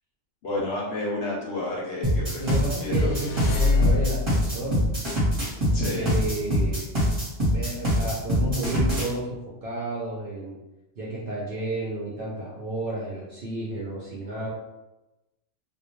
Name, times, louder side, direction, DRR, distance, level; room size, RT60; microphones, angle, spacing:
voice 1, 0.4-3.1 5.7-6.1, left 2 dB, 60° left, -4 dB, 0.8 m, -30 dB
sound 1, 2.0-9.1, equal, 25° right, 0.8 m, -24 dB
voice 2, 2.4-4.8 5.9-6.9 7.5-9.3 9.6-10.6 11.0-14.5, right 1 dB, 60° right, -5 dB, 0.6 m, -31 dB
sound 2, 2.7-4.4, left 4 dB, 85° left, 1.0 m, -25 dB
2.3 x 2.2 x 3.0 m, 1.0 s
omnidirectional pair, 1.4 m